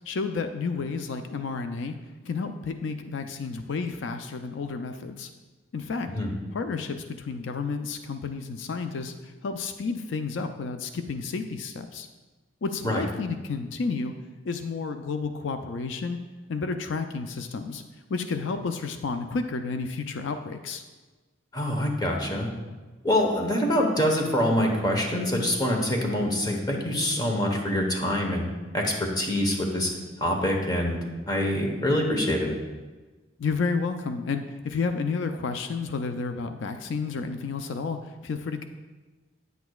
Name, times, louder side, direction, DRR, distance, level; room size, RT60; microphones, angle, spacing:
voice 1, 0.1-2.0 2.2-5.3 5.7-6.1 6.5-12.1 12.6-14.1 14.4-16.2 16.5-17.8 18.1-20.8 33.4-38.6, left 4 dB, 85° left, 7 dB, 0.4 m, -31 dB
voice 2, 21.5-22.5 23.0-28.5 28.7-29.9 30.2-31.0 31.3-32.5, left 1 dB, 20° left, 1 dB, 1.0 m, -25 dB
9.3 x 8.0 x 2.3 m, 1.3 s
head